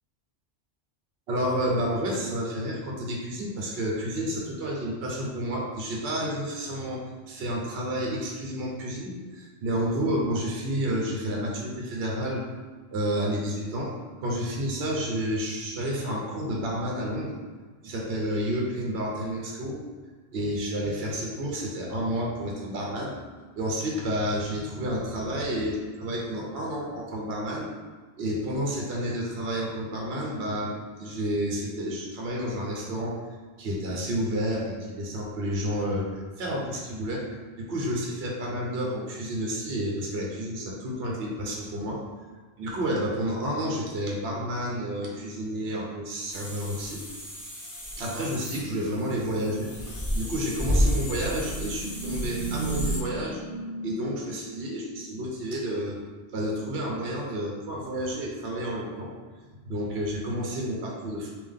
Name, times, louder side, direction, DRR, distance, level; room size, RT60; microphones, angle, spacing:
voice 1, 1.3-12.4 12.9-13.9 14.2-17.3 17.8-19.8 20.3-23.1 23.6-27.7 28.2-33.2 33.6-37.3 37.6-42.0 42.6-47.0 48.0-49.7 50.1-56.0 56.3-59.1 59.7-61.3, equal, 65° right, -3 dB, 1.0 m, -30 dB
sound 1, 46.3-53.0, equal, 20° left, 0.7 m, -31 dB
3.6 x 2.9 x 3.5 m, 1.5 s
omnidirectional pair, 1.1 m